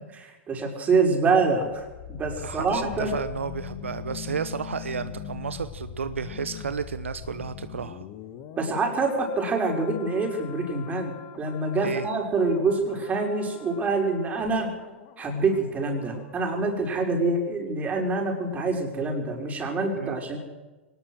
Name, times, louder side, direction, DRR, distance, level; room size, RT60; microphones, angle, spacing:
voice 1, 0.2-3.1 8.6-14.7 15.2-20.4, right 3 dB, 20° right, 2 dB, 5.9 m, -26 dB
sound 1, 1.6-16.5 16.8-16.9, left 10 dB, 45° left, 2.3 m, -42 dB
voice 2, 2.4-8.1 11.8-12.1 19.9-20.2, right 6 dB, 80° right, 12 dB, 1.0 m, -32 dB
23.5 x 19.5 x 6.6 m, 1.1 s
figure-of-eight pair, 105°, 7 cm